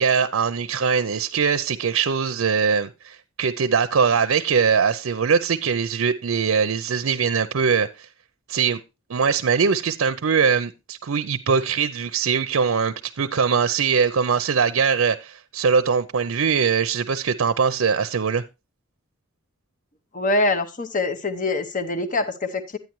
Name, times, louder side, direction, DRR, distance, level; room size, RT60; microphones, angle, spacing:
voice 1, 0.0-8.1 8.5-8.8 9.1-18.4, right 6 dB, 70° right, 0.5 m, -22 dB
voice 2, 20.1-22.8, left 2 dB, 40° left, 0.8 m, -24 dB
10.5 x 9.2 x 3.0 m
head